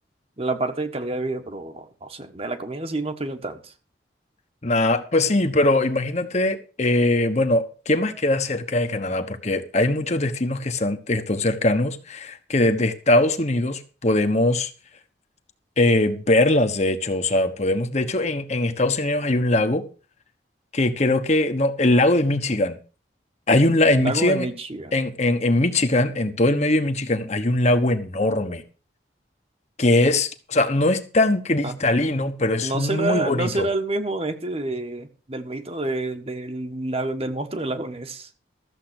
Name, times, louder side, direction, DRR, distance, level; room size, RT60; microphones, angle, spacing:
voice 1, 0.4-3.7 24.0-25.0 31.6-31.7 32.6-38.3, right 2 dB, 35° right, 1.3 m, -28 dB
voice 2, 4.6-14.7 15.8-19.8 20.7-22.8 23.5-24.5 24.9-28.6 29.8-33.7, left 2 dB, 40° left, 1.2 m, -21 dB
14.0 x 7.5 x 6.1 m
head